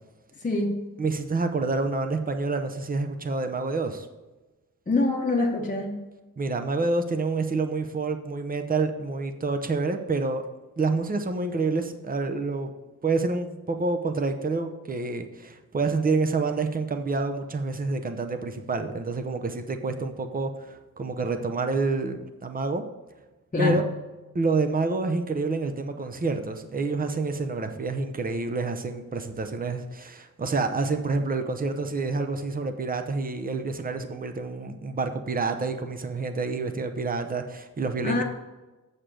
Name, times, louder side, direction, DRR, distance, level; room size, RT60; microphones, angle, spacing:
voice 1, 0.4-0.8 4.9-6.0 23.5-23.8 38.0-38.2, left 2 dB, 25° left, -1 dB, 0.9 m, -25 dB
voice 2, 1.0-4.1 6.4-10.4 10.8-12.7 13.0-22.8 23.6-23.8 24.3-38.2, right 3 dB, 25° right, 7 dB, 0.7 m, -28 dB
7.6 x 6.6 x 5.1 m, 1.1 s
wide cardioid pair, 170°, 32 cm